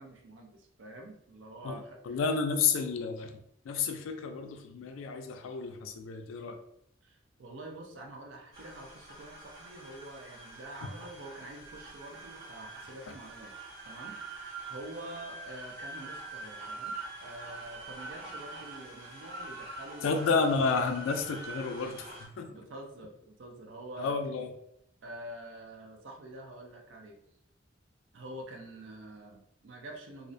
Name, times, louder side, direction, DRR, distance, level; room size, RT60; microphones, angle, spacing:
voice 1, 0.0-2.2 7.0-13.5 13.8-14.2 14.7-20.4 22.5-24.2 25.0-27.2 28.1-30.3, right 1 dB, 70° right, 2 dB, 0.5 m, -46 dB
voice 2, 1.6-6.6 20.0-22.5 24.0-24.5, left 4 dB, 90° left, 6 dB, 0.3 m, -31 dB
sound 1, 8.5-22.3, right 2 dB, 50° right, 1.2 m, -45 dB
2.4 x 2.1 x 2.5 m, 0.74 s
head